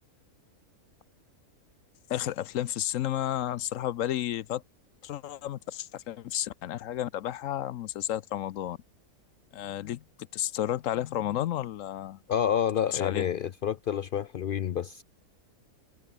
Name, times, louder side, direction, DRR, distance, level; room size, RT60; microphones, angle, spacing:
voice 1, 2.1-4.6 5.0-8.8 9.5-10.0 10.3-12.2 12.9-13.2, left 12 dB, 65° left, 0.9 m, -32 dB
voice 2, 12.3-15.0, left 8 dB, 90° left, 0.4 m, -28 dB
omnidirectional pair, 1.6 m